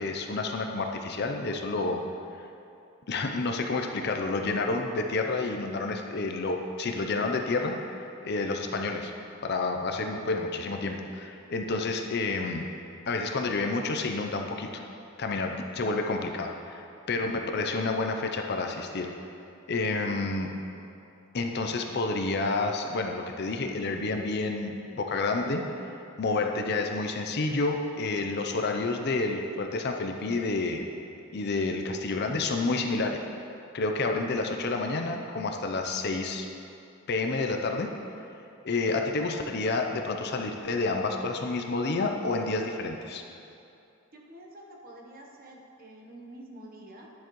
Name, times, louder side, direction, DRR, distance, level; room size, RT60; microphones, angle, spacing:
voice 1, 0.0-2.0 3.1-9.1 9.4-12.7 13.1-14.8 15.2-19.1 19.7-20.5 21.3-25.6 26.2-30.9 31.3-33.2 33.7-36.5 37.1-37.9 38.6-43.2, left 3 dB, 50° left, 3 dB, 0.5 m, -29 dB
voice 2, 44.1-47.1, right 1 dB, 40° right, 0 dB, 0.9 m, -48 dB
10.5 x 7.2 x 3.0 m, 2.7 s
head